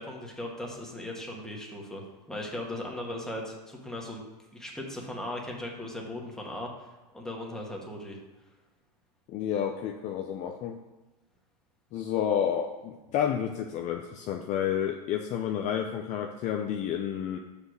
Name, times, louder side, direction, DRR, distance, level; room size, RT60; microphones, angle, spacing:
voice 1, 0.0-2.0 2.3-4.2 4.5-6.9 7.1-8.2, left 1 dB, 5° left, -2 dB, 1.7 m, -38 dB
voice 2, 9.3-10.8 11.9-17.4, left 9 dB, 35° left, 4 dB, 0.6 m, -30 dB
5.6 x 5.0 x 6.5 m, 1.1 s
hypercardioid pair, 125°, 20 cm